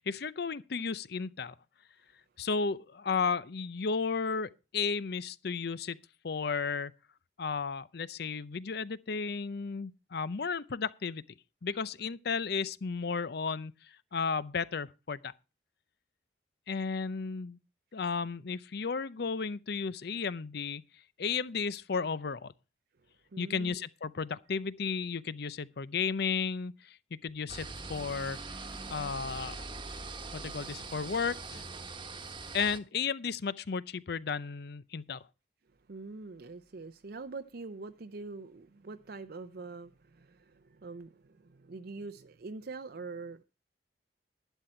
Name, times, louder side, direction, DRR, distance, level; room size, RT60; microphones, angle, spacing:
voice 1, 0.0-1.6 2.4-6.0 6.2-6.9 7.4-11.2 11.6-15.3 16.7-17.6 17.9-20.8 21.2-22.5 23.4-28.4 28.9-29.6 30.3-31.6 32.5-35.2, left 5 dB, 65° left, 0.6 m, -34 dB
voice 2, 23.3-23.8 35.9-43.4, right 3 dB, 60° right, 0.6 m, -44 dB
sound 1, 27.5-32.8, right 3 dB, 25° right, 1.2 m, -42 dB
11.5 x 10.0 x 4.4 m
head